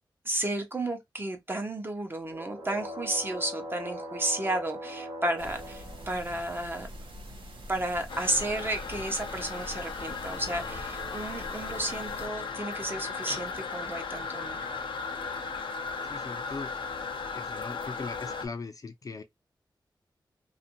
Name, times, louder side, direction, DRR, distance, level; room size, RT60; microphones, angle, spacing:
voice 1, 0.2-6.9 7.7-14.7, right 1 dB, 25° right, 0.8 m, -32 dB
sound 1, 2.3-6.9 10.2-13.1, equal, 65° right, 1.2 m, -43 dB
sound 2, 5.4-12.3, equal, 80° right, 1.0 m, -45 dB
Toilet flush, 8.1-18.5, left 5 dB, 85° left, 0.6 m, -36 dB
voice 2, 16.0-16.7 17.3-19.2, left 4 dB, 45° left, 0.4 m, -40 dB
2.5 x 2.5 x 2.8 m
wide cardioid pair, 105°, 8 cm